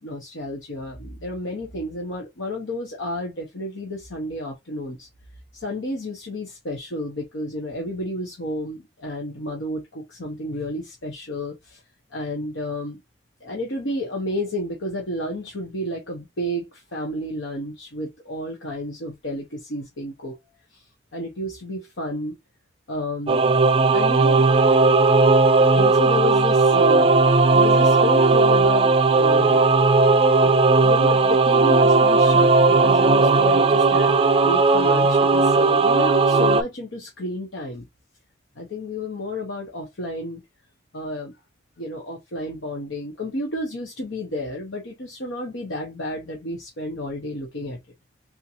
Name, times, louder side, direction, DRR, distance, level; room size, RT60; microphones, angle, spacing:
voice 1, 0.0-5.1 5.5-11.8 12.1-13.0 13.4-20.3 20.7-22.3 22.9-23.5 23.9-24.5 25.7-27.1 27.5-29.6 30.3-34.1 34.4-37.9 38.6-40.4 40.9-41.3 41.8-47.8, left 1 dB, 85° left, 0.9 m, -31 dB
Singing / Musical instrument, 23.3-36.6, right 3 dB, 30° right, 0.3 m, -17 dB
3.7 x 2.6 x 2.8 m
head